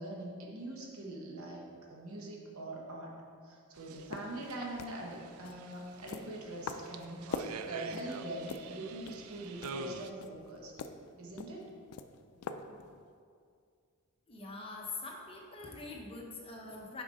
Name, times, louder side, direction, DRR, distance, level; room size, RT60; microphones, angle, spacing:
voice 1, 0.0-3.1 3.4-10.8 11.2-11.7, right 1 dB, 70° right, -1 dB, 1.0 m, -43 dB
sound 1, 3.8-10.1, right 5 dB, 90° right, 0.4 m, -47 dB
sound 2, 4.0-13.2, left 4 dB, 85° left, 0.4 m, -46 dB
voice 2, 14.3-17.0, left 3 dB, 25° left, -1 dB, 0.9 m, -44 dB
6.1 x 5.0 x 4.1 m, 2.2 s
head